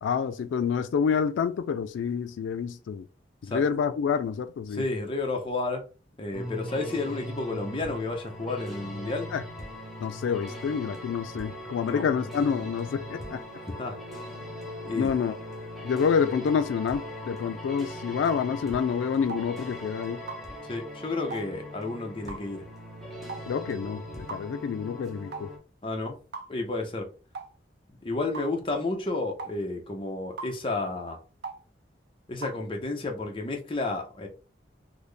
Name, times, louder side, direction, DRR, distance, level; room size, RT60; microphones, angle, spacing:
voice 1, 0.0-3.0 3.4-4.8 9.3-9.4 10.0-13.4 15.0-15.4 15.8-20.2 23.5-25.5, left 6 dB, 90° left, 0.3 m, -28 dB
voice 2, 4.7-5.8 6.2-9.3 11.8-12.1 13.7-14.0 14.8-15.1 20.7-22.6 25.8-26.2 26.5-27.1 28.0-31.2 32.3-34.3, left 2 dB, 30° left, 0.7 m, -31 dB
sound 1, 6.3-25.6, left 1 dB, ahead, 0.9 m, -40 dB
sound 2, 18.3-18.5 19.3-19.5 20.3-20.5 21.3-21.5 22.3-22.5 23.3-23.5 24.3-24.5 25.3-25.5 26.3-26.5 27.3-27.5 28.3-28.5 29.4-29.6 30.4-30.6 31.4-31.6 32.4-32.6, right 3 dB, 60° right, 0.5 m, -38 dB
4.0 x 2.1 x 3.3 m
head